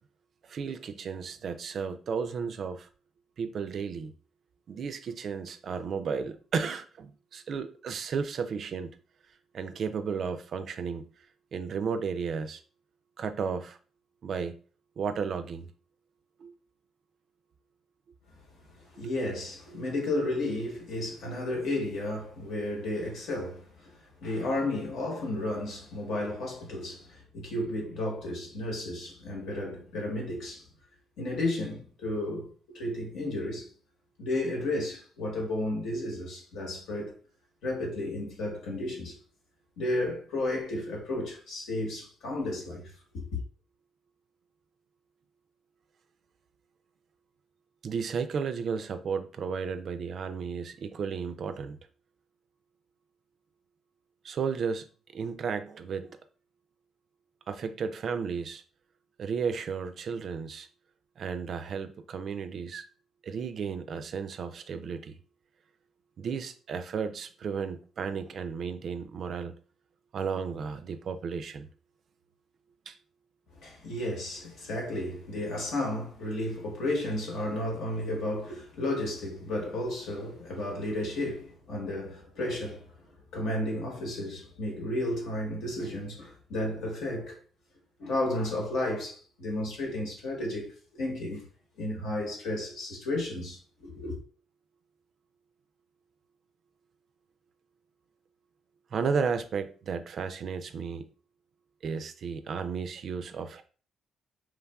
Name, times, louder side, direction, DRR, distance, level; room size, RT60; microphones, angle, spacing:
voice 1, 0.4-2.9 3.4-4.1 4.7-9.0 9.5-11.1 11.5-12.6 13.2-13.8 14.2-14.5 15.0-15.7 16.4-16.5 47.8-51.8 54.2-54.9 55.1-56.2 57.5-58.6 59.2-60.7 61.2-62.9 63.2-65.2 66.2-69.5 70.1-71.7 72.9-73.0 98.9-101.1 101.8-103.6, right 6 dB, 60° right, 0.3 m, -33 dB
voice 2, 19.0-30.6 31.2-33.7 34.2-37.1 37.6-39.2 39.8-43.4 73.6-82.9 83.3-87.4 88.0-91.4 91.8-94.2, left 1 dB, 80° left, 1.0 m, -33 dB
3.1 x 2.3 x 2.2 m
cardioid pair, 90°, 0 cm